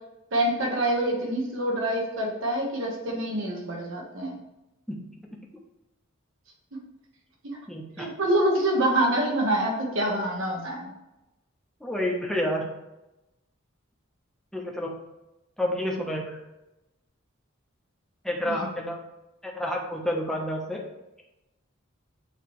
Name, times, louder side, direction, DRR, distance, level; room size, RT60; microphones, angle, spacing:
voice 1, 0.3-4.4 6.7-6.8 7.4-7.6 8.0-10.9 18.4-18.7, right 1 dB, 65° right, -1 dB, 1.4 m, -26 dB
voice 2, 7.7-8.1 11.8-12.6 14.5-14.9 15.6-16.4 18.2-19.0 19.4-20.8, left 1 dB, ahead, -2 dB, 1.0 m, -29 dB
9.0 x 3.3 x 3.2 m, 0.96 s
head